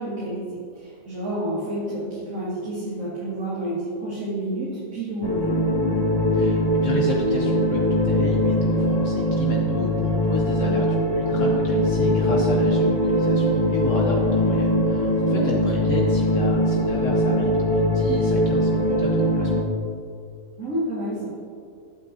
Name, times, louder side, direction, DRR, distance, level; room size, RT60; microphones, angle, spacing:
voice 1, 0.0-5.5 15.2-15.5 20.6-21.3, right 1 dB, 70° right, -9 dB, 2.5 m, -29 dB
sound 1, 5.2-19.6, equal, 20° left, 0.8 m, -21 dB
voice 2, 6.3-19.5, left 2 dB, 65° left, -1 dB, 1.3 m, -32 dB
15.5 x 8.8 x 2.7 m, 2.3 s
omnidirectional pair, 1.4 m